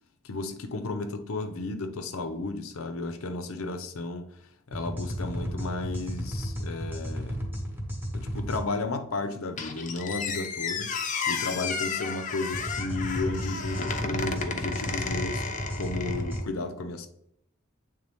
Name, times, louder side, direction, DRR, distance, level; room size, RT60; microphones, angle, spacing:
voice 1, 0.2-4.3 4.7-7.5 8.1-10.9 11.3-15.4 15.7-17.1, left 3 dB, 75° left, 0.6 m, -33 dB
sound 1, 4.7-8.6 12.5-16.4, equal, 10° right, 1.0 m, -33 dB
Squeak, 9.6-16.4, left 5 dB, 35° left, 0.6 m, -33 dB
8.2 x 3.4 x 3.5 m
head